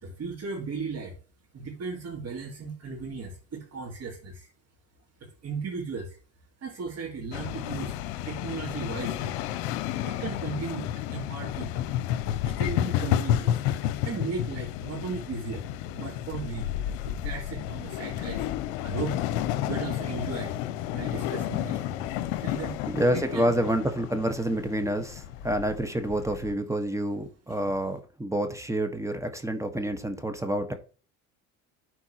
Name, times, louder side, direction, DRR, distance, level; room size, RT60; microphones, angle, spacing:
voice 1, 0.0-1.1 1.5-4.5 5.4-6.2 6.6-8.0 8.2-9.4 10.0-11.9 12.4-13.6 14.0-15.6 15.9-18.5 18.8-19.1 19.7-20.5 20.9-22.7 23.3-23.4 27.5-27.7, right 4 dB, 45° right, 2.7 m, -36 dB
sound 1, 7.3-26.5, left 12 dB, 85° left, 0.7 m, -31 dB
voice 2, 22.9-30.7, right 1 dB, 10° right, 1.5 m, -28 dB
12.5 x 4.5 x 3.0 m
supercardioid pair, 90°, 35 cm